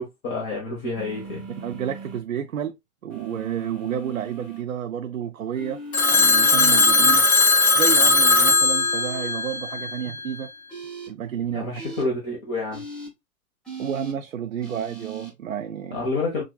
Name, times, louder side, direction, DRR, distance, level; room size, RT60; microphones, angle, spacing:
voice 1, 0.0-1.5 11.5-12.8 15.9-16.4, left 2 dB, 25° left, 1.1 m, -28 dB
sound 1, 0.9-2.2 3.1-4.6 5.5-7.2 7.9-9.3 10.7-11.1 11.8-12.0 12.7-13.1 13.6-14.1 14.6-15.3, right 5 dB, ahead, 0.7 m, -37 dB
voice 2, 1.6-2.7 3.0-7.3 7.7-10.5 11.1-11.8 13.8-16.1, right 8 dB, 70° right, 0.5 m, -30 dB
Telephone, 5.9-10.2, left 3 dB, 80° left, 0.7 m, -18 dB
5.9 x 2.4 x 2.2 m
figure-of-eight pair, 115°, 42 cm